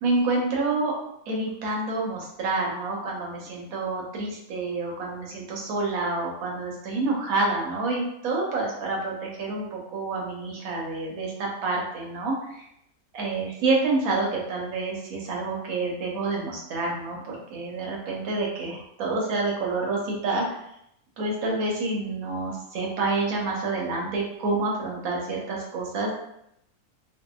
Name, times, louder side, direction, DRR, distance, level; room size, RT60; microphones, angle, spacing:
voice 1, 0.0-0.9 1.3-12.7 13.1-20.6 21.2-26.1, right 3 dB, 75° right, -1 dB, 1.1 m, -28 dB
2.7 x 2.3 x 2.3 m, 0.77 s
omnidirectional pair, 1.5 m